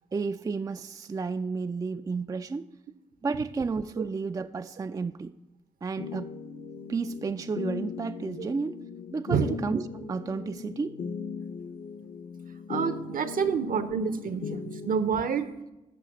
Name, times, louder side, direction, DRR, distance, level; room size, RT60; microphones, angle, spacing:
voice 1, 0.1-2.7 3.2-5.3 5.8-6.3 6.9-8.8 9.1-11.0, right 4 dB, 20° right, 0.3 m, -32 dB
sound 1, 6.0-14.9, left 6 dB, 50° left, 0.7 m, -38 dB
voice 2, 12.7-15.5, right 6 dB, 55° right, 0.7 m, -28 dB
7.4 x 6.1 x 6.0 m
hypercardioid pair, 40°, 17 cm